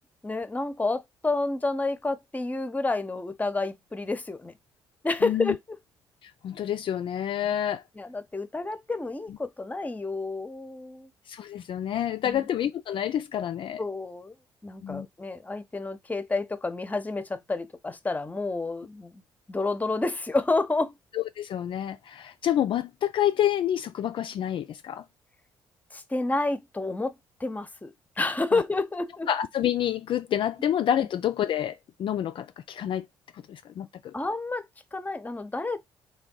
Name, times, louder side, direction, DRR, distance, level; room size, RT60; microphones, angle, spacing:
voice 1, 0.2-4.5 5.0-5.6 7.4-7.5 8.0-11.1 12.2-12.5 13.8-14.3 14.6-19.2 19.5-21.0 25.9-29.3 34.1-34.7 34.9-35.8, left 3 dB, 15° left, 0.7 m, -29 dB
voice 2, 5.2-5.6 6.2-7.8 11.3-13.8 14.8-15.1 21.1-25.0 28.5-28.6 29.3-33.1 33.3-34.1, left 10 dB, 55° left, 0.4 m, -28 dB
3.4 x 2.2 x 3.8 m
hypercardioid pair, 55°, 10 cm